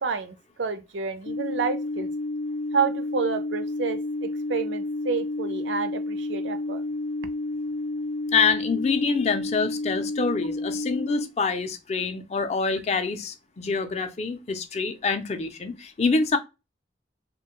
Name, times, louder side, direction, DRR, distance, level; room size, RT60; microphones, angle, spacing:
voice 1, 0.0-2.1 2.7-6.8, right 5 dB, 80° right, 0.5 m, -29 dB
sound 1, 1.3-11.3, left 2 dB, 80° left, 0.6 m, -30 dB
voice 2, 8.3-16.4, left 4 dB, 35° left, 0.4 m, -26 dB
3.0 x 2.2 x 2.9 m
head